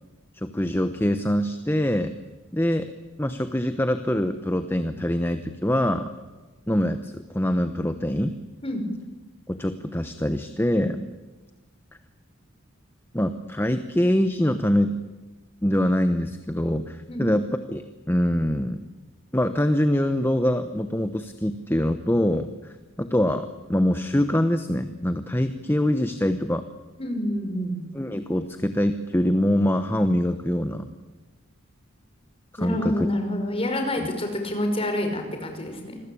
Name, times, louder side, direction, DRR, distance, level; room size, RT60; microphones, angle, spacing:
voice 1, 0.3-2.1 2.5-2.9 3.2-6.1 6.7-8.4 9.5-11.1 13.1-14.9 15.6-17.8 18.1-18.9 19.3-26.6 27.9-30.9 32.6-33.1 34.0-34.1, left 1 dB, 10° left, 9 dB, 1.0 m, -24 dB
voice 2, 27.0-27.8 32.6-36.0, left 1 dB, 25° left, 5 dB, 5.2 m, -27 dB
27.0 x 21.0 x 8.6 m, 1.2 s
head